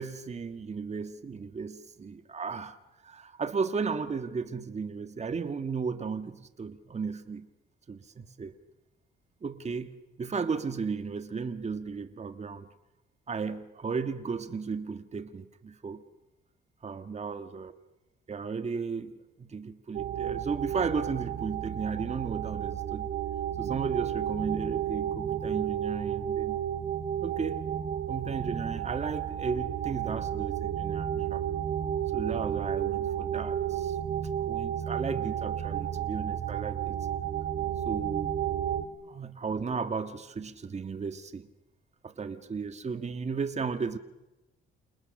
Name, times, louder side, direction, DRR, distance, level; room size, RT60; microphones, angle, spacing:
voice 1, 0.0-2.8 3.0-7.5 7.9-8.5 9.4-12.7 13.3-16.0 16.8-17.7 18.3-23.1 23.6-26.6 27.2-27.7 28.1-31.4 32.1-34.0 34.4-37.0 37.8-38.3 39.0-41.5 42.0-44.0, right 5 dB, 35° right, 9 dB, 1.6 m, -35 dB
sound 1, 19.9-38.9, right 10 dB, 70° right, 2.5 m, -32 dB
29.5 x 28.5 x 6.6 m, 1.0 s
cardioid pair, 90°, 20 cm